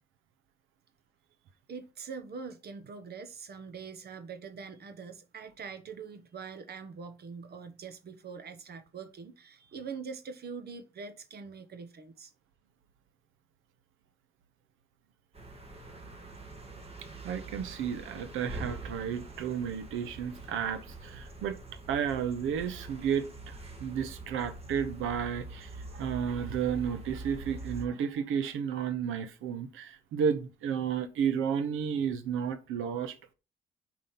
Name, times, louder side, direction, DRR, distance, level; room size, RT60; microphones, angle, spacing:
voice 1, 1.7-12.3, right 5 dB, 55° right, 1.1 m, -43 dB
sound 1, 15.3-27.8, right 2 dB, 30° right, 2.0 m, -44 dB
voice 2, 17.2-21.6 21.9-33.3, right 7 dB, 85° right, 1.0 m, -32 dB
5.3 x 4.9 x 5.8 m
cardioid pair, 90°, 20 cm